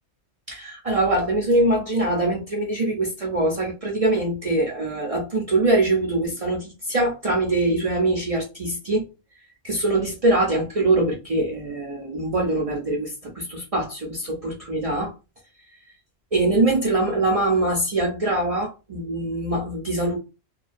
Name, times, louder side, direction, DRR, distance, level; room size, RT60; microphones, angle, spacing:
voice 1, 0.5-9.1 9.6-15.1 16.3-20.2, right 2 dB, 50° right, 0.4 m, -23 dB
2.4 x 2.2 x 2.4 m
omnidirectional pair, 1.2 m